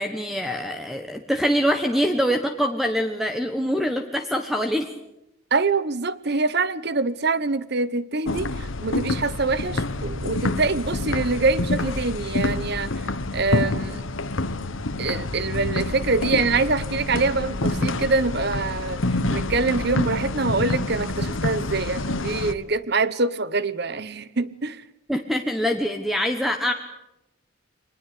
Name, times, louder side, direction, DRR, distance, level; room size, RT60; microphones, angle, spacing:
voice 1, 0.0-4.9 25.1-26.7, equal, ahead, 1.2 m, -24 dB
voice 2, 5.5-12.9 13.3-14.0 15.0-24.8, right 3 dB, 50° right, 1.0 m, -25 dB
sound 1, 8.2-22.5, left 2 dB, 70° left, 1.3 m, -27 dB
24.5 x 20.0 x 8.5 m
head